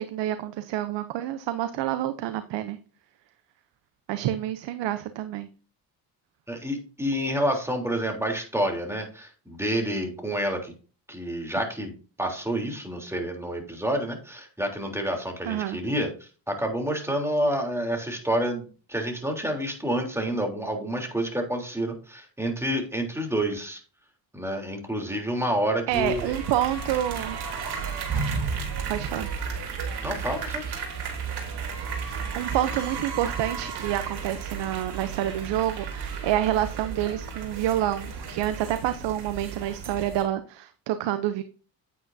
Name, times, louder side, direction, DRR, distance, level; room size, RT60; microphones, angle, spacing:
voice 1, 0.0-2.8 4.1-5.5 15.4-15.8 25.9-27.4 28.9-29.3 32.0-41.4, right 12 dB, 80° right, 11 dB, 0.8 m, -28 dB
voice 2, 6.5-10.7 11.1-11.9 12.2-23.8 24.3-26.3 30.0-30.6, equal, 5° right, 2 dB, 3.3 m, -28 dB
sound 1, 25.9-40.2, right 5 dB, 65° right, 3.2 m, -33 dB
9.4 x 8.3 x 2.7 m, 0.37 s
cardioid pair, 75°, 42 cm